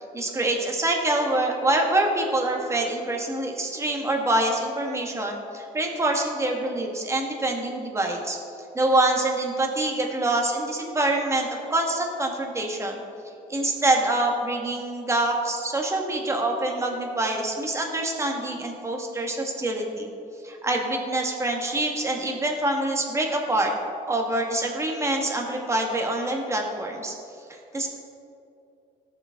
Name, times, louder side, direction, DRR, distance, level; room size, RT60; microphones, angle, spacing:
voice 1, 0.1-8.4 8.7-13.0 13.5-20.1 20.4-23.7 24.1-27.1 27.5-27.9, right 2 dB, 15° right, 1 dB, 1.8 m, -25 dB
17.5 x 6.8 x 3.8 m, 2.5 s
cardioid pair, 110°, 17 cm